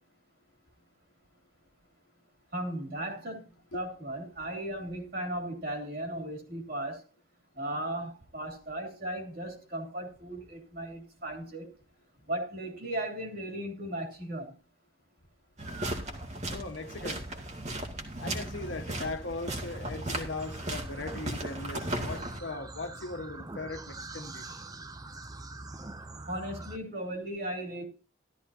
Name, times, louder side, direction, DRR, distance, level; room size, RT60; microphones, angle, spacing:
voice 1, 2.5-3.4 3.7-7.0 7.6-11.7 12.3-14.5 26.3-27.8, right 1 dB, 55° right, 3.0 m, -36 dB
sound 1, 15.6-22.4, right 1 dB, 35° right, 1.9 m, -36 dB
voice 2, 16.5-17.3 18.2-24.6, left 3 dB, 80° left, 1.4 m, -39 dB
sound 2, 20.4-26.8, right 2 dB, 20° right, 0.6 m, -44 dB
13.5 x 13.0 x 2.8 m
head